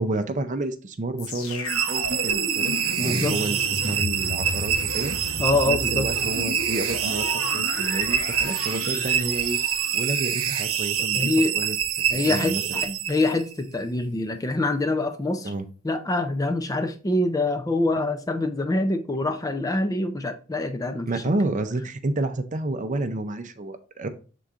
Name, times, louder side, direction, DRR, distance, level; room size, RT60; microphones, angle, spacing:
voice 1, 0.0-5.3 5.7-7.3 7.5-9.6 9.9-11.8 12.1-13.0 15.4-15.6 21.1-24.1, right 2 dB, 35° right, 0.5 m, -30 dB
sound 1, 1.2-11.2 11.8-11.9, left 3 dB, 80° left, 1.2 m, -34 dB
sound 2, 1.7-13.5, right 9 dB, 75° right, 0.9 m, -26 dB
voice 2, 3.0-3.4 5.4-6.1 11.1-11.7 12.1-15.5 15.8-21.1, left 2 dB, 15° left, 0.5 m, -25 dB
7.1 x 3.8 x 3.6 m
head